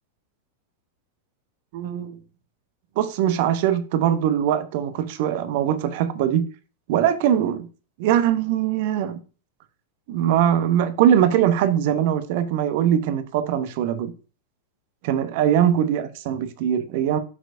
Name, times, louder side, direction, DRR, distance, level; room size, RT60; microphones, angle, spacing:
voice 1, 1.7-2.2 3.0-6.4 6.9-7.7 8.0-9.2 10.1-14.1 15.0-17.2, right 10 dB, 50° right, 1.0 m, -21 dB
11.0 x 6.1 x 2.6 m
figure-of-eight pair, 90°, 0 cm